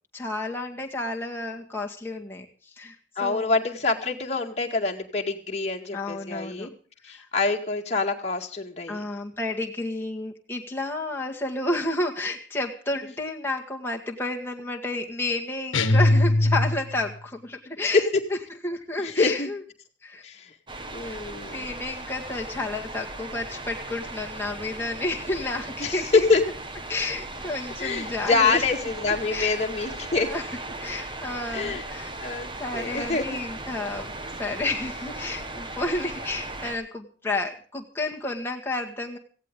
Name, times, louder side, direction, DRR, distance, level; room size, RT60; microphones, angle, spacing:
voice 1, 0.1-3.5 5.9-6.7 7.1-7.3 8.9-18.1 18.6-19.6 20.0-20.2 21.0-21.2 21.5-26.3 26.9-28.6 29.0-29.5 30.1-30.4 30.8-32.1 32.6-34.1 34.3-39.2, left 2 dB, 10° left, 0 dB, 2.0 m, -31 dB
voice 2, 3.2-6.7 7.0-9.0 17.9-18.0 19.0-19.5 20.2-20.5 20.9-21.6 25.8-26.4 27.8-30.3 31.5-31.8 32.2-33.4, left 3 dB, 35° left, 1 dB, 2.1 m, -25 dB
sound 1, 15.7-17.1, left 1 dB, 90° left, 1.3 m, -20 dB
sound 2, 20.7-36.8, right 2 dB, 25° right, 1.4 m, -37 dB
17.5 x 16.0 x 3.8 m, 0.39 s
head